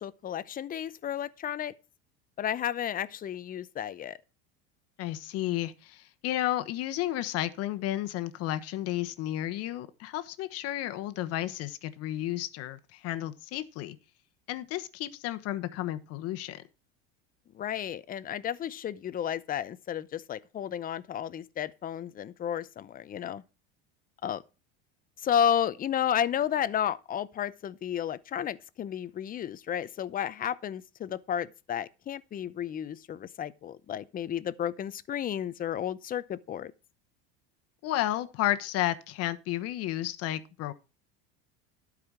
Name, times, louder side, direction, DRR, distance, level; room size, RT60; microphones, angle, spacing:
voice 1, 0.0-1.7 2.4-4.2 17.5-23.4 24.2-24.4 25.2-36.7, left 9 dB, 30° left, 0.7 m, -32 dB
voice 2, 5.0-14.0 14.5-16.6 37.8-40.7, left 14 dB, 55° left, 1.2 m, -32 dB
12.0 x 4.9 x 6.1 m
supercardioid pair, 115°, 30 cm